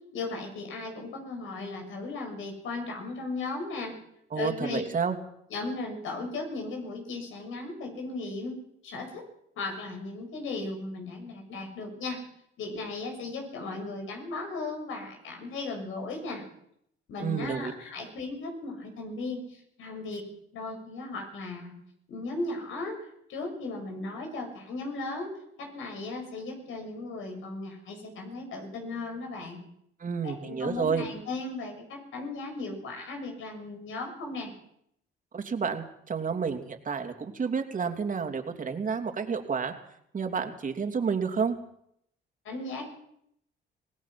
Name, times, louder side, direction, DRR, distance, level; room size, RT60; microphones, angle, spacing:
voice 1, 0.1-4.0 4.3-4.8 5.5-9.2 9.6-12.2 12.6-16.4 17.1-21.7 22.1-29.6 30.2-34.5 42.4-42.9, left 3 dB, 80° left, 3 dB, 6.9 m, -36 dB
voice 2, 4.3-5.2 17.2-17.7 30.0-31.0 35.3-39.7 40.1-41.6, right 5 dB, 40° right, 5 dB, 3.0 m, -30 dB
25.5 x 18.0 x 6.0 m, 0.72 s
cardioid pair, 90°, 20 cm